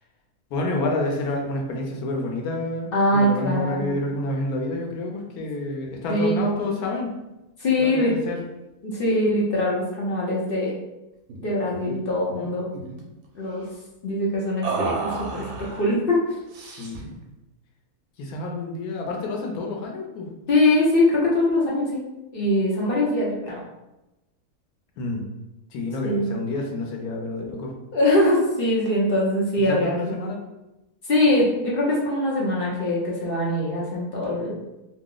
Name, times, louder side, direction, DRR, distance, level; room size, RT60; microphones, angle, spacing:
voice 1, 0.5-7.1 7.8-8.4 16.8-17.2 18.2-20.3 25.0-25.2 25.7-27.7 29.7-30.4, left 2 dB, 85° left, 0 dB, 1.2 m, -29 dB
voice 2, 2.9-3.9 6.1-6.5 7.6-8.1 8.8-10.7 11.4-12.7 13.3-13.7 14.0-16.2 20.5-22.0 22.3-23.6 26.0-26.3 27.9-30.3 31.1-34.6, left 1 dB, 50° left, -5 dB, 0.8 m, -22 dB
sound 1, 11.3-11.5 11.7-12.0 12.3-13.0 14.6-15.9 16.5-17.1, right 4 dB, 70° right, 1.1 m, -31 dB
2.8 x 2.0 x 3.7 m, 0.97 s
omnidirectional pair, 1.6 m